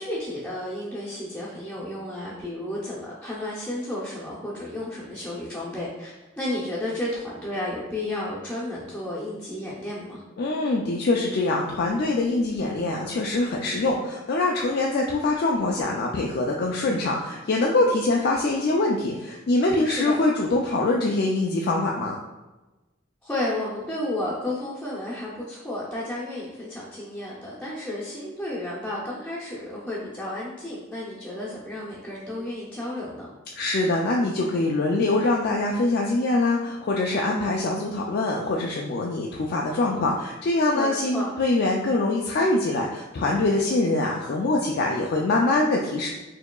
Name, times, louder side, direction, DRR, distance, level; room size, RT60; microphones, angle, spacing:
voice 1, 0.0-10.2 19.8-20.2 23.2-33.3 40.7-41.3, left 1 dB, 5° left, -8 dB, 0.6 m, -32 dB
voice 2, 10.4-22.2 33.6-46.1, left 2 dB, 55° left, -1 dB, 0.4 m, -24 dB
4.4 x 2.8 x 2.3 m, 1.1 s
head